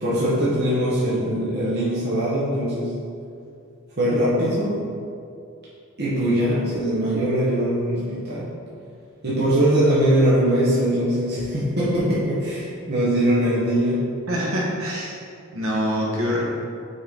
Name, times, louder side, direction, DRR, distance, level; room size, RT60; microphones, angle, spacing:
voice 1, 0.0-2.9 4.0-4.8 6.0-8.5 9.2-14.0, equal, 50° right, -9 dB, 1.1 m, -21 dB
voice 2, 14.3-15.2 15.5-16.4, equal, 70° right, -5 dB, 1.4 m, -25 dB
6.5 x 4.4 x 3.7 m, 2.5 s
head